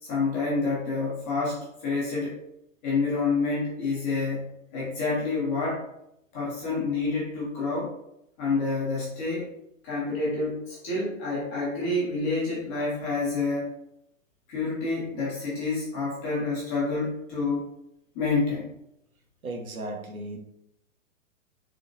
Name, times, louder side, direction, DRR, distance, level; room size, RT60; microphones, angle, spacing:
voice 1, 0.0-2.4 2.8-5.9 6.3-7.9 8.4-9.5 9.8-13.8 14.5-17.7 18.1-18.7, left 3 dB, 10° left, -6 dB, 0.3 m, -28 dB
voice 2, 19.4-20.4, right 2 dB, 90° right, 3 dB, 1.0 m, -35 dB
3.8 x 2.8 x 3.7 m, 0.80 s
hypercardioid pair, 125°, 41 cm